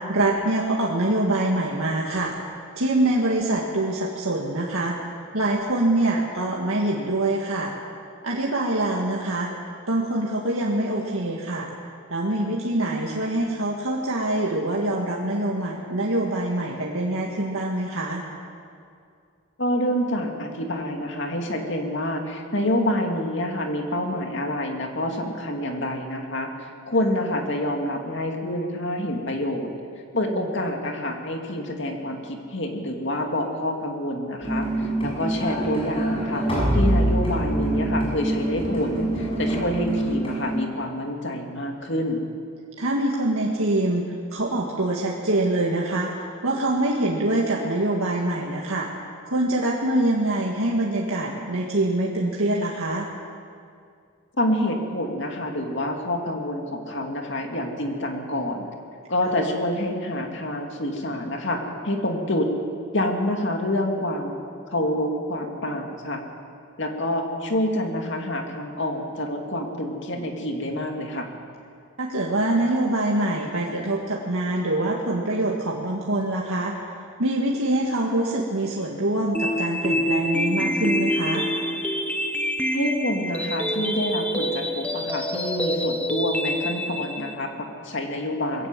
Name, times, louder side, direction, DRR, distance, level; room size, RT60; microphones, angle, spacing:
voice 1, 0.1-2.3 2.8-5.1 5.3-7.7 8.2-9.5 9.9-11.7 12.1-18.2 30.4-30.5 39.5-40.1 42.8-44.0 44.3-48.9 49.3-53.1 72.0-76.7 77.2-81.5, right 1 dB, 80° right, -2 dB, 1.9 m, -24 dB
voice 2, 19.6-29.7 30.1-42.2 54.4-58.7 59.1-62.5 62.9-64.4 64.7-66.2 66.8-71.3 82.7-88.7, left 1 dB, 55° left, 3 dB, 2.4 m, -27 dB
sound 1, 34.4-40.6, right 1 dB, 25° left, 6.5 m, -25 dB
sound 2, 79.3-87.3, equal, 5° left, 1.0 m, -26 dB
21.5 x 17.0 x 7.6 m, 2.3 s
head